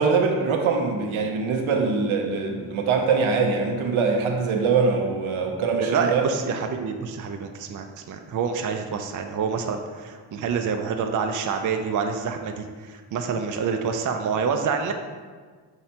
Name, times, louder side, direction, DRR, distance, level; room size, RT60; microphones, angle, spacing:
voice 1, 0.0-6.2, right 4 dB, 75° right, 3 dB, 0.7 m, -23 dB
voice 2, 5.8-14.9, right 6 dB, 40° right, 5 dB, 0.4 m, -27 dB
5.7 x 3.1 x 2.8 m, 1.5 s
cardioid pair, 60°, 49 cm